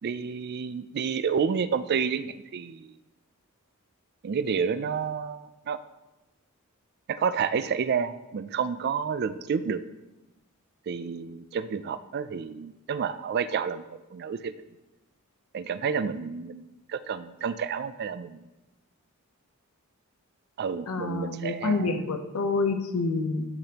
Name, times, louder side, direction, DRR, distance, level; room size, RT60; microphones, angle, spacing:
voice 1, 0.0-2.9 4.2-5.8 7.1-9.8 10.9-14.5 15.5-18.5 20.6-22.0, right 6 dB, 45° right, 13 dB, 0.3 m, -30 dB
voice 2, 20.9-23.4, left 3 dB, 80° left, 7 dB, 0.7 m, -27 dB
13.0 x 5.1 x 2.9 m, 1.0 s
head